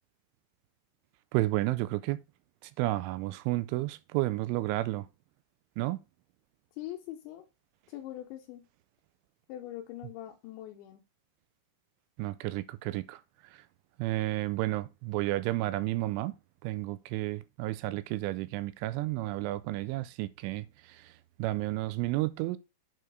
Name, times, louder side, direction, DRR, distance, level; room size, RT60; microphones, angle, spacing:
voice 1, 1.3-2.2 2.6-5.1 5.8-6.0 12.2-13.2 14.0-16.3 16.6-21.1 21.4-22.6, right 18 dB, 85° right, 2.8 m, -31 dB
voice 2, 6.8-7.5 7.9-8.7 9.5-11.0, left 13 dB, 80° left, 2.8 m, -42 dB
8.3 x 4.6 x 4.7 m
omnidirectional pair, 5.8 m